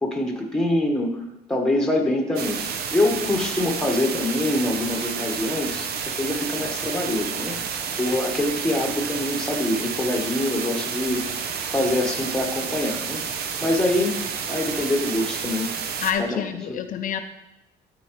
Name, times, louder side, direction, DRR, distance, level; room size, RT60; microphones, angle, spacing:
voice 1, 0.0-5.9 6.1-11.3 11.7-13.2 13.6-14.2 14.5-15.7 16.2-16.8, left 1 dB, 5° left, 1 dB, 1.4 m, -25 dB
sound 1, 2.4-16.1, right 6 dB, 70° right, 0.8 m, -30 dB
voice 2, 16.0-17.2, left 8 dB, 50° left, 8 dB, 0.5 m, -27 dB
12.5 x 4.5 x 3.2 m, 0.89 s
cardioid pair, 110°, 17 cm